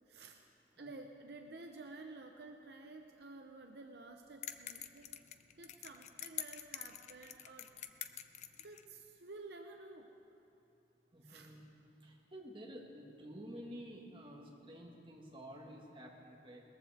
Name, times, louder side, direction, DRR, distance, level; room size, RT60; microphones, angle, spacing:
voice 1, 0.1-0.4 0.8-5.1 5.5-7.7 8.6-10.1 11.2-11.5, right 3 dB, 70° right, 4 dB, 0.7 m, -52 dB
sound 1, 4.4-8.8, left 10 dB, 40° left, 0.4 m, -46 dB
voice 2, 11.1-11.6 12.0-16.6, equal, 30° right, -2 dB, 1.7 m, -51 dB
19.5 x 14.5 x 3.5 m, 3.0 s
head